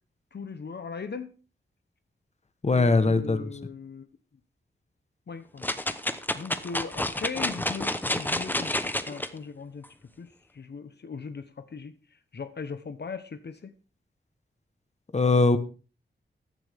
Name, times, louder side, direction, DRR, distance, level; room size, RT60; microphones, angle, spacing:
voice 1, 0.3-1.4 2.7-4.1 5.3-5.7 6.3-9.9 10.2-13.7, left 5 dB, 55° left, 10 dB, 1.0 m, -39 dB
voice 2, 2.6-3.5 15.1-15.6, left 3 dB, 35° left, 11 dB, 1.1 m, -21 dB
sound 1, 5.6-9.3 9.8-9.9, left 1 dB, 10° left, 0.9 m, -29 dB
15.0 x 10.5 x 3.5 m, 0.35 s
wide cardioid pair, 90°, 20 cm